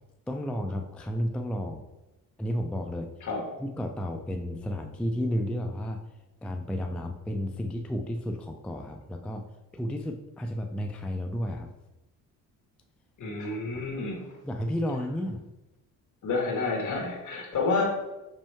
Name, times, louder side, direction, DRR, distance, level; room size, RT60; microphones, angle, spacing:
voice 1, 0.3-1.8 2.4-3.1 3.6-6.0 6.4-9.4 9.7-11.7 13.4-13.6 14.4-15.4, equal, 5° left, 3 dB, 0.3 m, -32 dB
voice 2, 13.2-14.3 16.2-17.8, left 3 dB, 55° left, 0 dB, 1.8 m, -29 dB
5.4 x 5.2 x 3.6 m, 1.0 s
cardioid pair, 155°, 35 cm